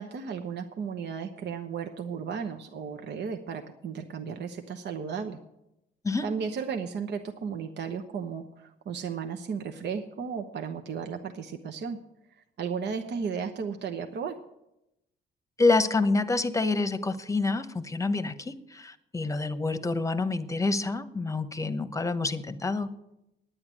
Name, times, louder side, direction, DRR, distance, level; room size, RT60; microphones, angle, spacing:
voice 1, 0.0-5.4 6.2-12.0 12.6-14.4, right 6 dB, 60° right, 5 dB, 0.9 m, -34 dB
voice 2, 15.6-22.9, left 3 dB, 15° left, 11 dB, 1.0 m, -27 dB
9.7 x 9.6 x 7.5 m, 0.86 s
cardioid pair, 90°, 20 cm